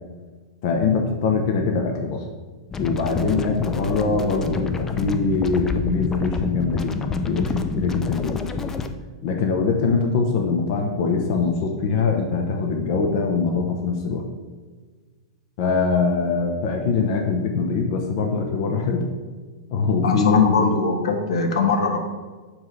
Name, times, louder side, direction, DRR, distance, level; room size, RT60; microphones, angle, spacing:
voice 1, 0.6-2.2 2.8-8.5 9.2-14.2 15.6-19.1 19.7-20.7, left 4 dB, 50° left, 2 dB, 0.8 m, -22 dB
sound 1, 2.7-8.9, left 4 dB, 10° left, 0.4 m, -28 dB
voice 2, 20.0-22.0, left 4 dB, 85° left, 4 dB, 1.2 m, -22 dB
7.2 x 3.2 x 5.5 m, 1.4 s
supercardioid pair, 155°, 3 cm